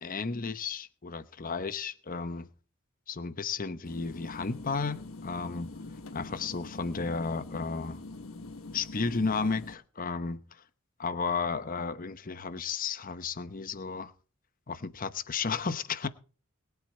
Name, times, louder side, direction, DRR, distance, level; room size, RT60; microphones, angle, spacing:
voice 1, 0.0-2.5 3.1-5.7 6.1-8.0 8.7-10.4 11.0-14.1 14.7-16.1, left 4 dB, 40° left, 0.9 m, -33 dB
sound 1, 3.8-9.7, left 2 dB, 85° left, 1.2 m, -44 dB
22.0 x 8.2 x 4.4 m
head